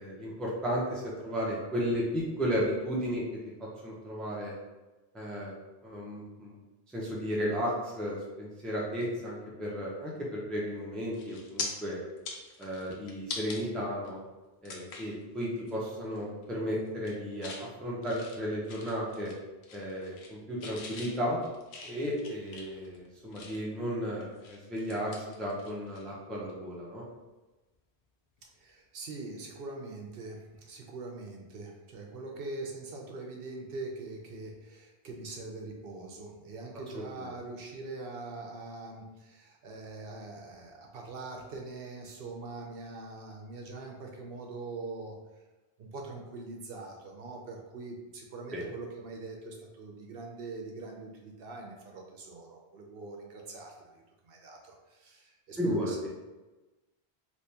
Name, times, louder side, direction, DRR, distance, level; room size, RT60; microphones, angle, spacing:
voice 1, 0.0-3.2 3.6-4.5 5.1-5.5 5.8-6.6 6.9-12.0 12.6-14.2 14.6-19.3 19.7-21.4 21.8-25.1 25.4-27.0 36.9-37.3 48.5-48.6 55.6-55.9, equal, ahead, -5 dB, 0.5 m, -34 dB
sound 1, 10.6-10.8 11.1-11.7 12.1-13.6 14.0-14.1 14.6-15.1 15.6-15.8 16.1-16.5 16.9-17.6 18.0-19.4 19.6-20.3 20.6-23.8 24.2-26.0 26.3-26.5 28.4-28.5, left 4 dB, 90° left, 0.9 m, -43 dB
voice 2, 28.6-45.4 45.8-56.0, right 3 dB, 65° right, 1 dB, 0.7 m, -43 dB
3.3 x 2.9 x 2.8 m, 1.1 s
omnidirectional pair, 1.1 m